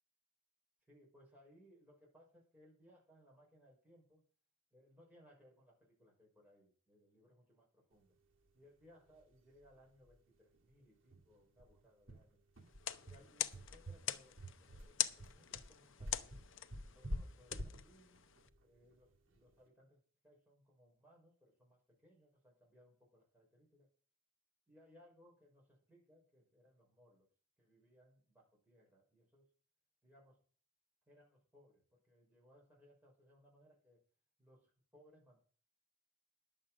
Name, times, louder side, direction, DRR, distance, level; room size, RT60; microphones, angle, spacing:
voice 1, 0.9-4.2 4.7-8.1 8.5-12.4 13.0-16.5 16.9-18.3 18.6-23.9 24.7-27.3 27.6-29.5 30.0-30.4 31.1-34.0 34.4-35.4, equal, 10° right, -4 dB, 6.0 m, -66 dB
sound 1, 9.2-9.3 9.6-9.7 10.0-10.2 10.5-10.6 11.1-19.5, equal, 75° right, 2.3 m, -48 dB
sound 2, 12.7-18.5, left 11 dB, 70° left, 0.7 m, -44 dB
10.5 x 7.7 x 5.9 m, 0.43 s
head